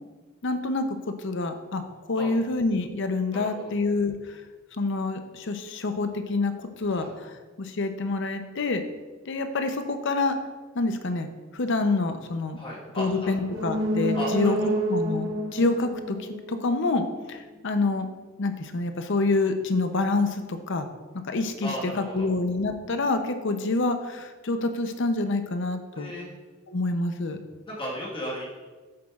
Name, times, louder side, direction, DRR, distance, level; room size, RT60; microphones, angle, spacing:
voice 1, 0.4-1.8 2.1-4.4 4.8-8.8 9.3-10.4 10.7-11.3 11.5-12.6 13.0-18.1 18.4-20.9 21.3-21.7 22.0-26.1 26.7-27.4, left 3 dB, 60° left, 8 dB, 0.6 m, -27 dB
voice 2, 3.3-3.7 6.8-7.1 12.6-13.5 14.1-14.3 14.7-14.8 21.6-21.9 22.2-22.3 25.9-26.3 27.7-28.5, equal, 25° left, -4 dB, 1.5 m, -35 dB
sound 1, 13.4-17.1 17.5-17.6, equal, 70° right, 0.9 m, -29 dB
8.1 x 7.5 x 2.4 m, 1.3 s
head